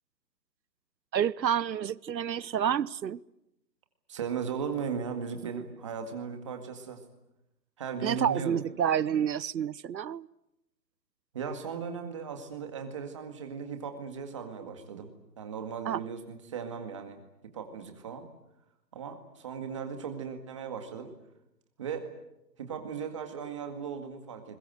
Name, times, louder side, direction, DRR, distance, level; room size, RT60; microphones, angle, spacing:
voice 1, 1.1-3.2 8.0-10.3 15.8-16.0, right 9 dB, 80° right, 1.0 m, -29 dB
voice 2, 4.1-7.0 7.8-8.6 11.3-15.1 15.4-17.2 17.5-18.3 18.9-21.1 21.8-22.1 22.6-24.6, right 6 dB, 20° right, 2.0 m, -37 dB
29.5 x 22.0 x 7.9 m
hypercardioid pair, 180°, 50 cm